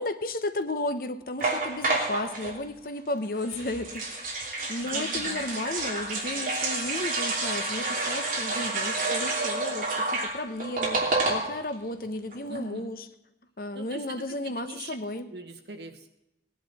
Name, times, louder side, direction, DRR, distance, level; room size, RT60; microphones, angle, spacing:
voice 1, 0.0-4.0 4.7-13.0 13.6-15.3, left 2 dB, 55° left, 9 dB, 0.9 m, -33 dB
sound 1, 1.4-2.6 3.4-11.7 12.0-12.1 12.3-12.6, right 3 dB, 50° right, 2.8 m, -29 dB
voice 2, 4.9-5.4 12.5-12.9 13.7-14.9 15.3-16.1, right 2 dB, 70° right, 4 dB, 1.6 m, -41 dB
18.5 x 10.5 x 4.2 m, 0.89 s
head